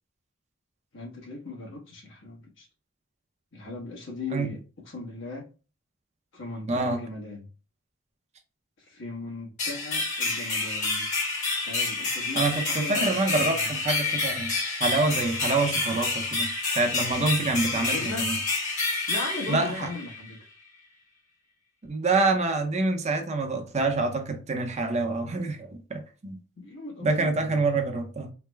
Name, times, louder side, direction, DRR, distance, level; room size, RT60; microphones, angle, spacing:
voice 1, 0.9-2.7 3.5-4.6 4.9-5.4 6.3-7.5 8.8-11.0 11.6-13.7 17.7-18.3 19.1-20.4 26.6-27.8, left 2 dB, 70° left, 1.1 m, -38 dB
voice 2, 6.7-7.0 12.3-18.4 19.5-19.9 21.9-26.4 27.0-28.3, right 3 dB, 35° right, 0.6 m, -27 dB
sound 1, 9.6-20.3, left 3 dB, 40° left, 1.1 m, -29 dB
3.3 x 2.1 x 3.3 m
head